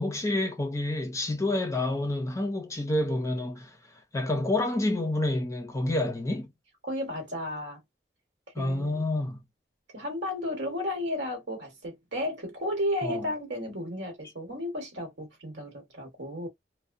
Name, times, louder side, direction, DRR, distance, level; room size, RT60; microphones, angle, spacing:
voice 1, 0.0-6.5 8.6-9.4 13.0-13.2, left 1 dB, 20° left, 0.5 m, -29 dB
voice 2, 6.8-7.8 8.6-9.0 9.9-16.5, left 1 dB, 80° right, 1.2 m, -33 dB
2.7 x 2.0 x 2.5 m
head